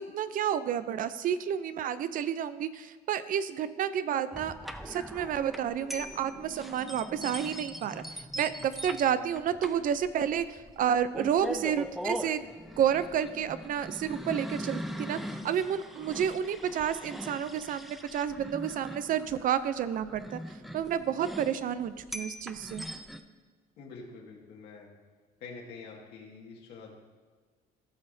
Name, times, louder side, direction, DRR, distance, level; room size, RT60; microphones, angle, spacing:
voice 1, 0.0-4.5 4.8-12.5 12.8-20.4 20.7-22.9, right 9 dB, 55° right, 13 dB, 0.5 m, -30 dB
sound 1, 4.3-23.2, equal, ahead, 0.5 m, -41 dB
voice 2, 23.8-24.9 25.4-26.9, left 4 dB, 80° left, -1 dB, 1.9 m, -46 dB
16.0 x 5.7 x 2.7 m, 1.5 s
cardioid pair, 110°, 17 cm